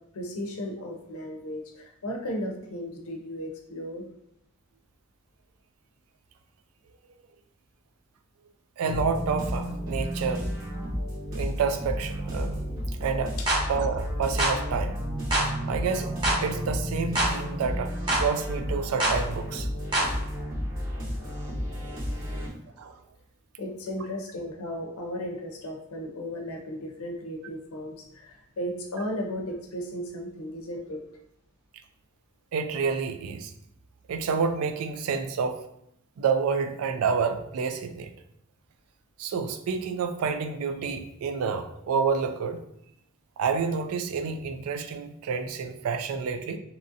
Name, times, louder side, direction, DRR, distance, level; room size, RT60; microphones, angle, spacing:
voice 1, 0.1-4.0 13.4-13.5 23.6-31.0, equal, 85° left, 2 dB, 0.5 m, -35 dB
sound 1, 8.8-22.5, equal, 65° right, 1.3 m, -32 dB
voice 2, 8.8-10.5 11.3-12.6 13.0-13.4 13.7-15.0 15.7-16.1 16.4-19.7 22.3-22.5 22.8-23.0 32.5-33.5 34.1-35.6 36.2-38.1 39.2-42.6 43.4-46.6, right 5 dB, 90° right, 8 dB, 0.3 m, -29 dB
sound 2, 13.5-13.6 14.4-14.6 15.3-15.5 16.2-16.4 17.2-17.3 18.1-18.3 19.0-19.2 19.9-20.1, right 1 dB, 20° right, 0.8 m, -24 dB
2.9 x 2.5 x 2.6 m, 0.77 s
head